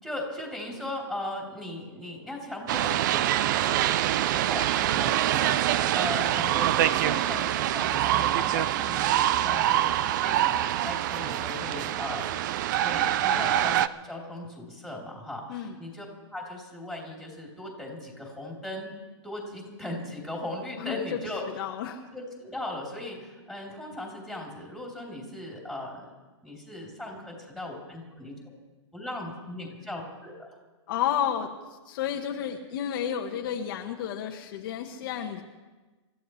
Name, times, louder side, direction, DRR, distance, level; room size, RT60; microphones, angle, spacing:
voice 1, 0.0-6.7 7.0-12.2 12.8-13.8 14.0-16.0 16.3-18.9 19.2-21.4 22.1-26.1 26.4-28.3 28.9-30.5, left 1 dB, ahead, -2 dB, 3.4 m, -38 dB
sound 1, 2.7-13.9, right 12 dB, 40° right, 0.4 m, -25 dB
voice 2, 20.8-21.2 21.6-22.0 30.9-35.4, left 9 dB, 45° left, 2 dB, 1.2 m, -31 dB
27.5 x 14.5 x 3.2 m, 1.2 s
hypercardioid pair, 155°, 15 cm